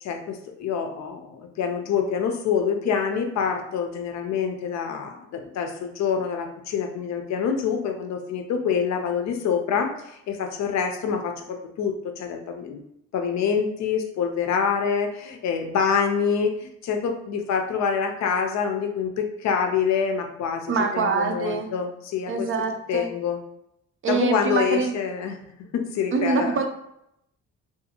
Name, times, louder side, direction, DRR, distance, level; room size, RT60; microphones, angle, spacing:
voice 1, 0.0-12.8 13.1-22.5 22.9-23.4 24.1-25.4 25.7-26.6, left 6 dB, 65° left, 5 dB, 0.5 m, -26 dB
voice 2, 20.7-21.7 22.3-23.1 24.0-24.9 26.1-26.7, right 5 dB, 45° right, 4 dB, 0.4 m, -24 dB
2.4 x 2.4 x 2.8 m, 0.79 s
cardioid pair, 90°, 30 cm